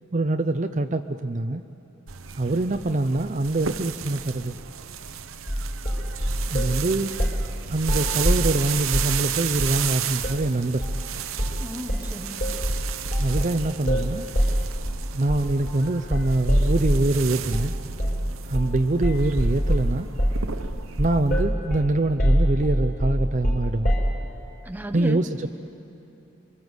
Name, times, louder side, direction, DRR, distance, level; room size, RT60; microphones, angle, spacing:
voice 1, 0.1-1.6 2.4-4.5 6.5-7.1 7.7-10.8 13.2-14.3 15.1-17.7 18.5-20.1 21.0-23.9 24.9-25.5, right 2 dB, 35° right, 8 dB, 0.6 m, -24 dB
sound 1, 2.1-21.4, right 9 dB, 80° right, 0.9 m, -34 dB
sound 2, 5.5-6.8 7.2-7.5 7.8-9.2 9.6-9.8 10.2-10.4 10.8-11.0 11.4-11.6 11.9-17.1 17.5-17.7 18.0-18.3 18.5-18.8 19.0-24.2, equal, 45° left, 4.9 m, -24 dB
voice 2, 11.6-12.5 24.6-25.5, equal, 10° right, 7 dB, 1.0 m, -34 dB
27.5 x 24.0 x 8.1 m, 2.8 s
head